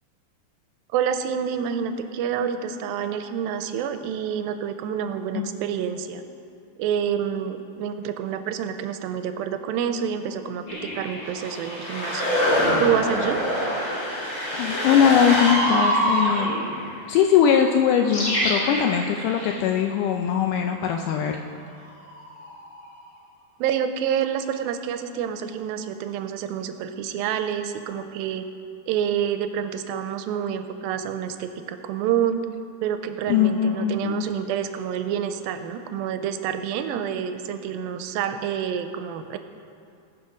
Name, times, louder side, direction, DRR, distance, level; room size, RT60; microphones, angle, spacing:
voice 1, 0.9-6.2 6.8-10.6 10.9-12.3 12.8-13.4 23.6-28.5 28.9-32.5 32.8-39.4, right 8 dB, 90° right, 9 dB, 2.4 m, -28 dB
sound 1, 10.7-16.9 17.9-19.6 22.0-22.8, equal, 35° left, 2.5 m, -25 dB
voice 2, 14.5-16.5 17.1-21.4 33.3-34.3, left 8 dB, 80° left, 3 dB, 1.9 m, -21 dB
18.5 x 6.3 x 5.2 m, 2.4 s
omnidirectional pair, 4.2 m